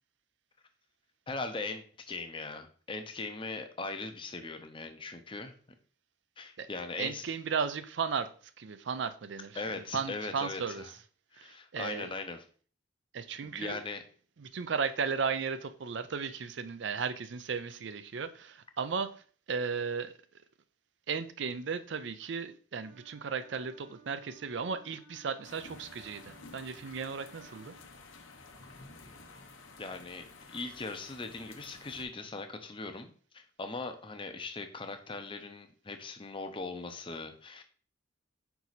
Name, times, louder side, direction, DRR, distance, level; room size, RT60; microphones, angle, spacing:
voice 1, 1.3-5.5 6.4-7.2 9.5-10.6 11.3-12.4 13.4-14.0 29.8-37.6, left 3 dB, 25° left, 0.6 m, -40 dB
voice 2, 7.0-8.3 8.6-11.0 11.3-12.1 13.1-13.8 14.4-20.1 21.1-27.7, right 5 dB, 65° right, 0.5 m, -35 dB
Wind instrument woodwind instrument, 22.7-27.9, right 4 dB, 90° right, 1.2 m, -59 dB
sound 1, 25.4-32.0, left 3 dB, 85° left, 0.9 m, -52 dB
5.3 x 4.6 x 4.0 m
head